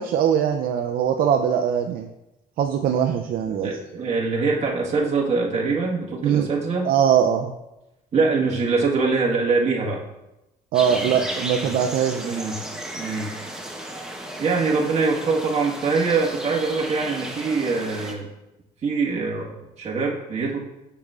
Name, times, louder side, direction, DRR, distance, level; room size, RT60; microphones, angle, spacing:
voice 1, 0.0-2.1 2.6-3.7 6.2-6.5 6.8-7.5 10.7-12.3, right 8 dB, 60° right, 5 dB, 0.5 m, -21 dB
voice 2, 3.5-6.9 8.1-10.0 10.9-11.3 11.6-11.7 12.2-12.6 12.9-13.3 14.4-18.3 18.8-20.6, right 4 dB, 40° right, -3 dB, 1.5 m, -24 dB
sound 1, 10.7-18.1, right 1 dB, 5° right, 0.9 m, -34 dB
6.9 x 6.6 x 2.4 m, 0.94 s
cardioid pair, 110°, 17 cm